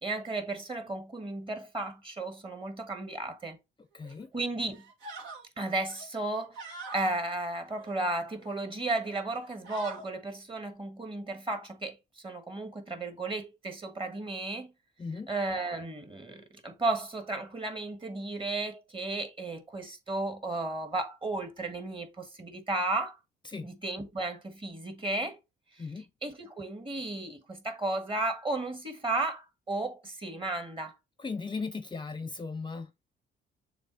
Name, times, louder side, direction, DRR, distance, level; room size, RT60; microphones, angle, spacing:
voice 1, 0.0-3.6 4.3-4.8 5.6-6.6 6.9-14.7 15.3-23.2 23.6-25.4 25.7-25.8 26.2-30.9, right 2 dB, 25° right, 1.7 m, -34 dB
voice 2, 3.9-4.3 15.0-15.3 23.4-23.7 25.8-26.1 31.2-33.0, left 4 dB, 25° left, 0.6 m, -37 dB
sound 1, 4.0-4.3 4.7-5.4 5.9-7.1 7.7-8.6 9.0-9.2 9.4-10.1, right 3 dB, 70° right, 2.3 m, -44 dB
6.9 x 3.1 x 4.4 m
cardioid pair, 90°, 20 cm